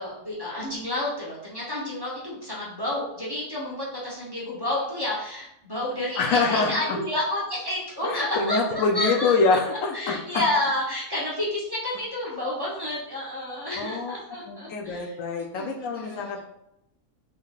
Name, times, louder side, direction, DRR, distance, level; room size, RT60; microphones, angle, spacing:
voice 1, 0.0-9.4 9.9-15.1 15.5-16.4, left 1 dB, 20° right, -7 dB, 0.8 m, -30 dB
voice 2, 6.2-7.0 8.0-10.4 13.8-14.1 14.5-16.4, left 4 dB, 80° left, 2 dB, 1.0 m, -25 dB
3.6 x 3.0 x 2.4 m, 0.80 s
omnidirectional pair, 1.4 m